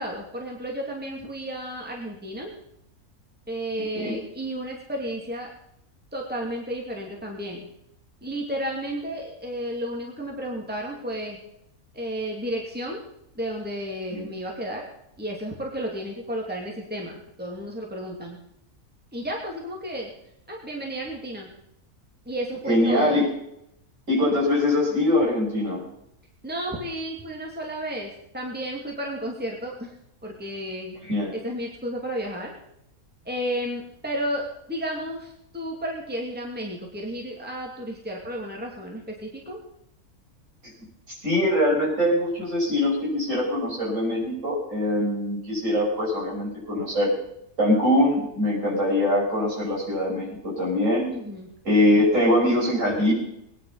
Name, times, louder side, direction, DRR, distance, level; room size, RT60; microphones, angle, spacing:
voice 1, 0.0-2.5 3.5-5.5 6.1-7.7 8.2-11.4 11.9-13.0 13.3-14.8 15.2-18.4 19.1-20.1 20.5-21.5 22.3-23.2 26.4-29.9 30.2-30.9 31.3-32.5 33.2-39.6 51.1-51.5, equal, 5° right, -1 dB, 2.5 m, -32 dB
voice 2, 22.7-23.3 24.1-25.8 31.0-31.3 41.1-47.1 47.6-51.1 51.7-53.1, left 1 dB, 60° right, -4 dB, 6.9 m, -23 dB
21.0 x 10.0 x 5.6 m, 0.79 s
omnidirectional pair, 1.5 m